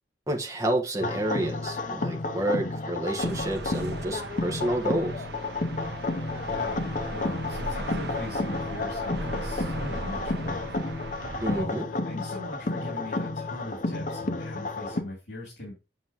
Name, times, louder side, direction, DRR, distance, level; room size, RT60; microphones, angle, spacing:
voice 1, 0.3-5.1 11.4-11.9, right 1 dB, 20° right, 1.4 m, -29 dB
sound 1, 1.0-15.0, left 2 dB, 45° left, 0.8 m, -31 dB
sound 2, 3.2-11.6, right 2 dB, 65° right, 0.9 m, -38 dB
voice 2, 6.5-6.8 7.1-10.7 11.5-15.8, left 1 dB, 75° left, 3.4 m, -40 dB
7.7 x 7.6 x 3.0 m
head